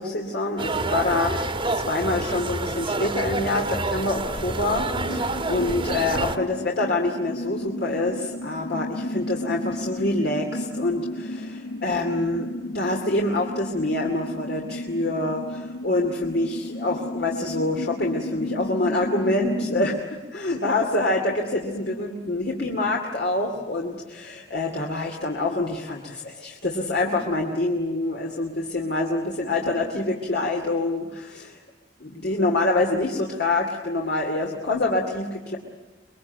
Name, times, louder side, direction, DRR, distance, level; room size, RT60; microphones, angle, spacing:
voice 1, 0.0-20.1 20.3-31.6 32.0-35.6, left 2 dB, 65° left, 0 dB, 2.5 m, -26 dB
sound 1, 0.6-6.4, right 2 dB, 30° right, 1.4 m, -28 dB
sound 2, 5.0-20.0, left 1 dB, 85° left, 1.0 m, -33 dB
25.0 x 22.0 x 9.3 m, 1.2 s
head